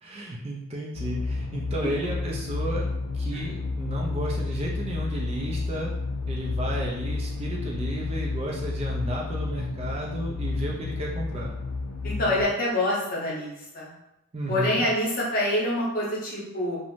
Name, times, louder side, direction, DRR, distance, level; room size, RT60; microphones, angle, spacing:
voice 1, 0.0-2.9 3.1-5.9 6.2-11.6 14.3-14.9, right 1 dB, 25° right, -2 dB, 0.3 m, -33 dB
sound 1, 0.9-12.5, left 3 dB, 85° left, 0.4 m, -31 dB
voice 2, 12.0-13.9 14.5-16.8, left 1 dB, 40° left, -5 dB, 0.7 m, -26 dB
2.5 x 2.0 x 3.1 m, 0.87 s
head